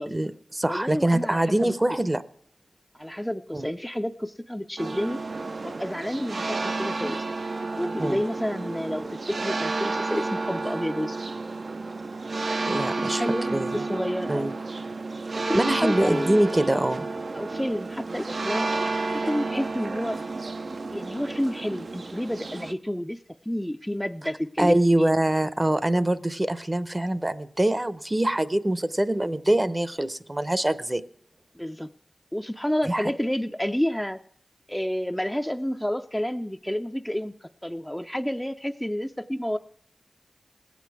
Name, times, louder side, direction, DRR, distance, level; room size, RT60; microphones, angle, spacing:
voice 1, 0.1-2.2 3.5-3.7 8.0-8.2 12.7-13.2 13.5-13.7 14.3-14.5 15.5-17.1 24.6-31.0 32.9-33.1, right 1 dB, 25° right, 14 dB, 0.6 m, -24 dB
voice 2, 0.7-2.0 2.9-5.2 5.6-7.2 7.8-11.2 13.1-14.5 15.3-16.4 17.3-18.7 19.1-20.2 20.9-25.1 31.5-31.9 32.3-34.2 34.7-39.6, equal, 5° left, 7 dB, 0.4 m, -30 dB
sound 1, 4.8-22.7, right 3 dB, 65° right, 0.5 m, -31 dB
18.5 x 8.4 x 4.7 m, 0.67 s
cardioid pair, 45°, 0 cm